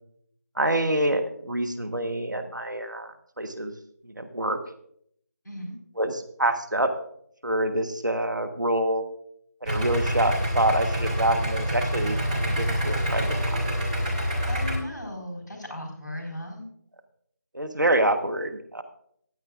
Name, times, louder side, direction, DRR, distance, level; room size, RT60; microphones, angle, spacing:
voice 1, 0.6-3.7 4.2-4.6 6.0-6.9 7.4-9.0 9.6-13.8 17.5-18.8, right 1 dB, 90° right, 6 dB, 1.2 m, -26 dB
voice 2, 5.4-5.8 14.5-16.7, left 1 dB, 5° left, -11 dB, 3.5 m, -36 dB
Idling, 9.6-14.7, equal, 25° right, 2.7 m, -26 dB
15.0 x 10.5 x 2.5 m, 0.70 s
figure-of-eight pair, 165°, 10 cm